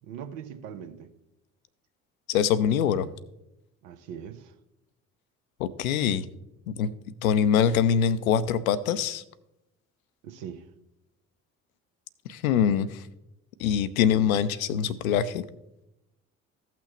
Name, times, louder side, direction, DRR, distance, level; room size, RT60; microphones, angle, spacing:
voice 1, 0.0-1.1 3.8-4.5 10.2-10.7, right 8 dB, 65° right, 0.9 m, -41 dB
voice 2, 2.3-3.1 5.6-6.2 6.7-6.9 7.2-9.2 12.3-13.0 13.6-15.4, left 8 dB, 75° left, 0.6 m, -24 dB
15.0 x 5.9 x 2.9 m
figure-of-eight pair, 50°, 42 cm